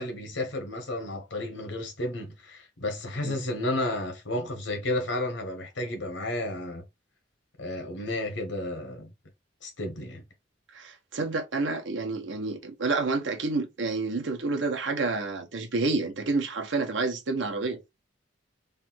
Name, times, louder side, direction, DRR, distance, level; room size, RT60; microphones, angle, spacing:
voice 1, 0.0-6.8 7.6-9.1 9.6-10.2, left 1 dB, 75° left, 1.4 m, -32 dB
voice 2, 10.7-17.8, right 3 dB, 75° right, 0.9 m, -29 dB
3.3 x 2.5 x 4.5 m
head